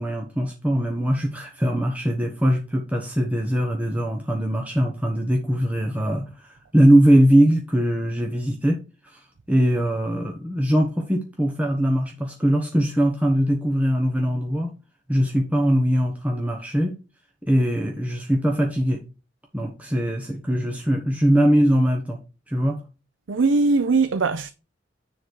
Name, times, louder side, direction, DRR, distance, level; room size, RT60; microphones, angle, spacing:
voice 1, 0.0-9.2 9.5-14.8 15.1-17.0 17.4-19.0 19.5-22.2 22.5-22.8, equal, 10° right, 1.0 m, -21 dB
voice 2, 23.3-24.5, right 3 dB, 85° right, 0.6 m, -20 dB
9.7 x 4.0 x 4.5 m
head